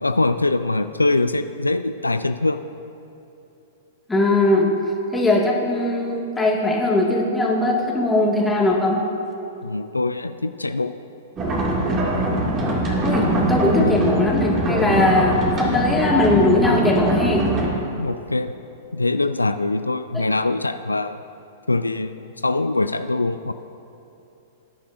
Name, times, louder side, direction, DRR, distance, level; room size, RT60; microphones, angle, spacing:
voice 1, 0.0-2.6 9.6-11.0 13.8-14.0 14.9-15.1 18.0-18.5 18.9-21.2 21.7-23.5, left 2 dB, 90° left, 10 dB, 0.3 m, -23 dB
voice 2, 4.1-4.7 5.1-9.0 13.0-17.5, left 2 dB, 10° left, -2 dB, 1.9 m, -20 dB
sound 1, 11.4-17.6, right 1 dB, 30° right, 2.3 m, -22 dB
19.0 x 10.0 x 2.6 m, 2.9 s
figure-of-eight pair, 105°, 0 cm